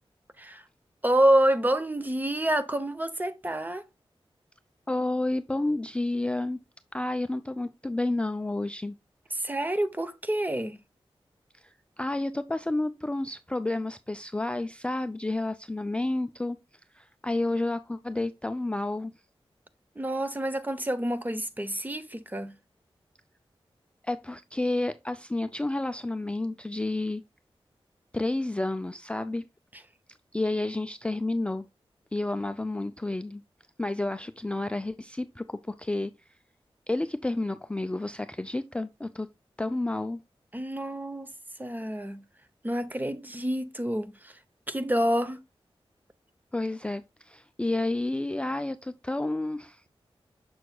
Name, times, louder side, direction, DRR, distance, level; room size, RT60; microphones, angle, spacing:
voice 1, 1.0-3.8 9.3-10.8 20.0-22.5 29.7-29.8 40.5-41.3 41.6-42.2 42.6-44.4 44.7-45.4, right 1 dB, 20° right, 0.7 m, -27 dB
voice 2, 4.9-6.6 6.9-8.9 11.5-16.6 16.9-19.1 24.0-27.2 28.1-29.5 30.3-31.6 32.1-33.4 33.8-36.1 36.9-39.3 39.6-40.2 46.5-49.8, left 2 dB, 10° left, 0.3 m, -30 dB
6.9 x 6.2 x 2.2 m
wide cardioid pair, 85°, 10 cm